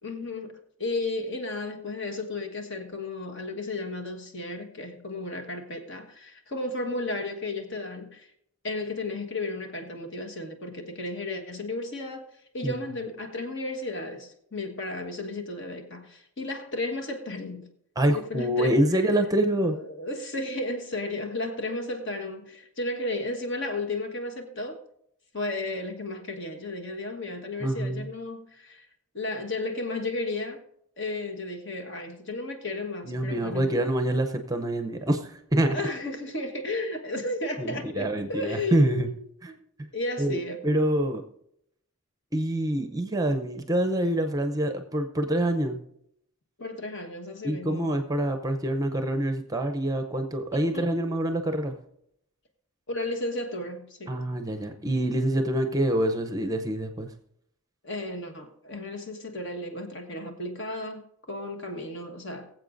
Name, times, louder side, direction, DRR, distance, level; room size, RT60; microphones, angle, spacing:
voice 1, 0.0-8.3 8.6-12.2 12.5-17.7 18.1-18.8 19.6-24.8 25.3-28.9 29.1-30.6 31.0-33.8 35.7-39.6 39.9-40.6 46.6-47.9 50.5-50.9 52.9-54.2 57.8-61.0 61.3-62.5, left 2 dB, 55° left, 1.3 m, -34 dB
voice 2, 18.0-19.8 27.6-28.1 33.0-35.8 37.6-39.1 39.4-39.5 40.2-41.2 42.3-45.8 47.4-51.7 54.1-57.1, right 1 dB, 15° right, 0.6 m, -26 dB
22.5 x 7.6 x 2.6 m
head